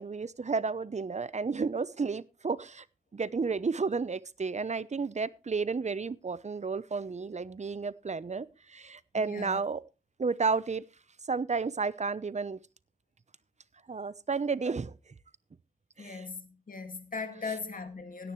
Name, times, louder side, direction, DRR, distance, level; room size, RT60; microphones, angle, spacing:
voice 1, 0.0-2.8 3.1-9.8 10.2-10.8 11.3-12.6 13.9-14.9 16.0-16.3, right 4 dB, 50° right, 0.8 m, -32 dB
voice 2, 9.1-9.6 16.0-18.3, left 4 dB, 70° left, 2.2 m, -39 dB
16.5 x 10.0 x 3.2 m
cardioid pair, 50°, 15 cm